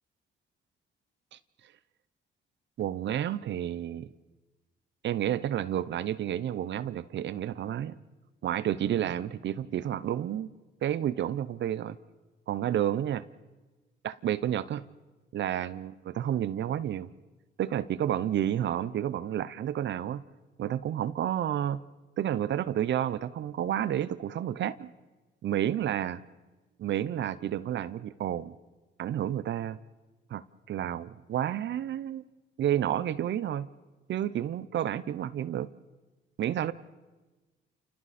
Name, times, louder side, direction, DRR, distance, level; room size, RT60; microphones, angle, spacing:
voice 1, 2.8-4.1 5.0-8.0 8.4-10.5 10.8-12.0 12.5-13.2 14.0-14.8 15.3-17.1 17.6-20.2 20.6-21.8 22.2-24.9 25.4-26.2 26.8-28.5 29.0-29.8 30.3-32.2 32.6-33.7 34.1-35.7 36.4-36.7, right 11 dB, 65° right, 0.8 m, -30 dB
29.5 x 28.5 x 4.3 m
cardioid pair, 90°, 20 cm